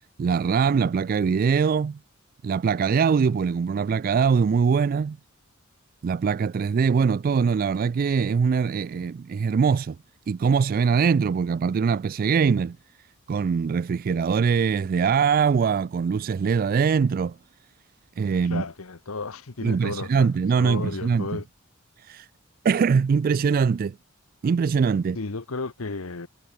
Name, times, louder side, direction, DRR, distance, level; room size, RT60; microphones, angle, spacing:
voice 1, 0.2-2.0 2.4-5.2 6.0-10.0 10.3-12.8 13.3-17.4 18.2-18.6 19.6-21.4 22.0-22.3 22.6-24.0 24.4-25.2, right 6 dB, 45° right, 0.3 m, -22 dB
voice 2, 18.4-20.3 20.6-21.5 25.1-26.3, left 3 dB, 80° left, 1.2 m, -33 dB
head